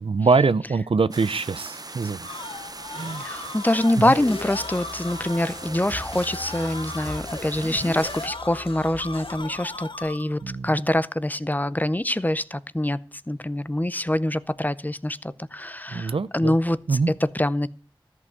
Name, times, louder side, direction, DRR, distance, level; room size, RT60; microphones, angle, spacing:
voice 1, 0.0-2.3 2.9-3.2 4.0-4.1 10.4-10.7 15.9-16.6 16.9-17.1, right 4 dB, 90° right, 0.5 m, -23 dB
sound 1, 1.1-8.3, right 2 dB, 45° right, 0.7 m, -39 dB
sound 2, 1.9-10.5, left 3 dB, 60° left, 0.8 m, -38 dB
voice 2, 3.2-13.0 13.3-17.0 17.3-17.7, left 1 dB, 20° left, 0.6 m, -25 dB
sound 3, 4.1-9.5, left 2 dB, 85° left, 1.4 m, -40 dB
13.5 x 5.5 x 8.0 m
wide cardioid pair, 50°, 9 cm